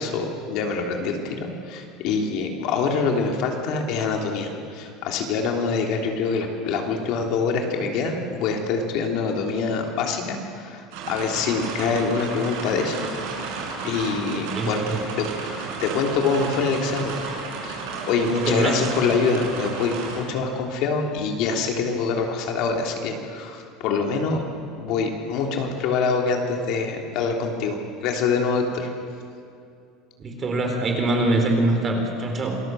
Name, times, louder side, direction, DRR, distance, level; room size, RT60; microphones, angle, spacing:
voice 1, 0.0-13.1 13.8-14.8 15.2-17.1 17.6-24.4 24.8-28.9, left 4 dB, 55° left, 2 dB, 3.3 m, -25 dB
sound 1, 10.9-20.2, right 4 dB, 75° right, 6.7 m, -33 dB
voice 2, 14.4-15.0 18.4-18.9 30.2-32.6, right 2 dB, 25° right, 3 dB, 4.0 m, -24 dB
27.5 x 20.0 x 7.8 m, 2.5 s
cardioid pair, 165°, 0 cm